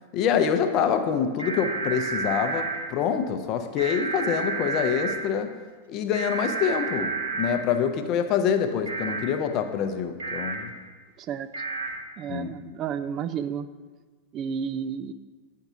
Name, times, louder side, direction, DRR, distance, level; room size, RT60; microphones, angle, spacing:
voice 1, 0.1-5.5 5.9-10.7 12.3-12.5, left 7 dB, 40° left, 7 dB, 0.6 m, -26 dB
sound 1, 1.4-2.8 3.8-5.1 6.1-7.5 8.9-9.2 10.2-10.5 11.5-11.9, right 4 dB, 65° right, 1.2 m, -30 dB
voice 2, 12.2-13.7 14.3-15.1, right 7 dB, 35° right, 13 dB, 0.3 m, -31 dB
8.9 x 4.6 x 3.6 m, 1.4 s
figure-of-eight pair, 90°, 0 cm